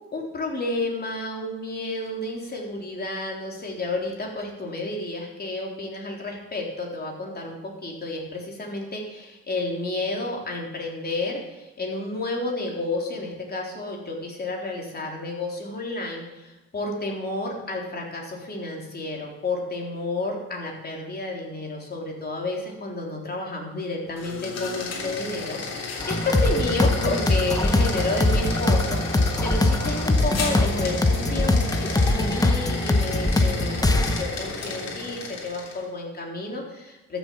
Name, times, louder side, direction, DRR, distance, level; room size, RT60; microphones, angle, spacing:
voice 1, 0.1-37.2, left 2 dB, 30° left, -1 dB, 3.6 m, -31 dB
sound 1, 24.1-35.8, left 3 dB, 55° left, 3.5 m, -33 dB
sound 2, 26.0-34.2, left 2 dB, 10° left, 1.0 m, -22 dB
13.0 x 7.2 x 7.0 m, 1.0 s
cardioid pair, 90°, 30 cm